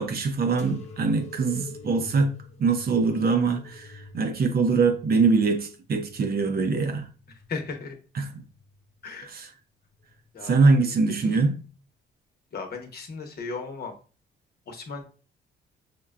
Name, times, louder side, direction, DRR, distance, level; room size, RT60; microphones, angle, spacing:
voice 1, 0.0-7.1 8.2-8.4 9.3-9.5 10.4-11.5, right 4 dB, 50° right, 0.7 m, -23 dB
sound 1, 0.6-7.8 8.3-9.1 9.8-10.4 11.3-11.5, left 2 dB, 35° left, 0.6 m, -46 dB
voice 2, 7.3-8.0 9.0-9.3 10.3-10.6 11.2-11.4 12.5-13.9 14.7-15.0, left 4 dB, 55° left, 0.9 m, -36 dB
5.8 x 2.2 x 2.3 m
cardioid pair, 90°, 20 cm